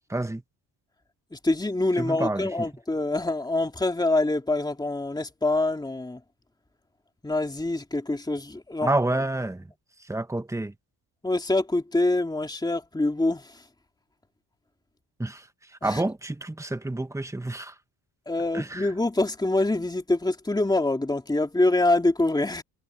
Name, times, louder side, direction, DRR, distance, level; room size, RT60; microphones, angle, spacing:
voice 1, 0.1-0.4 1.9-2.5 8.8-9.7 10.1-10.7 15.2-15.5 15.8-17.7 18.5-18.9, right 2 dB, 5° right, 1.5 m, -28 dB
voice 2, 1.3-6.2 7.2-8.9 11.2-13.6 15.8-16.0 18.3-22.6, left 2 dB, 10° left, 2.8 m, -25 dB
cardioid pair, 105°, 41 cm